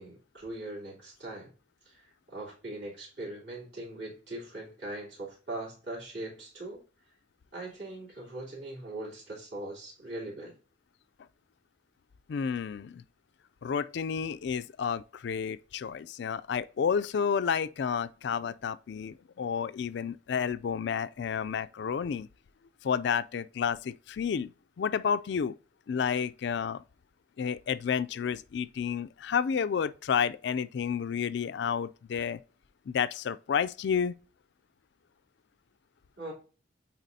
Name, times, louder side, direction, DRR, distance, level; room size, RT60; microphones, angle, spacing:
voice 1, 0.0-1.5 1.8-2.0 2.3-6.8 7.5-10.6 36.2-36.3, right 2 dB, 60° right, 3.3 m, -40 dB
voice 2, 12.3-13.0 13.6-22.3 22.8-25.5 25.9-26.8 27.4-32.4 32.9-34.1, left 7 dB, 60° left, 0.3 m, -31 dB
9.0 x 4.1 x 2.7 m
head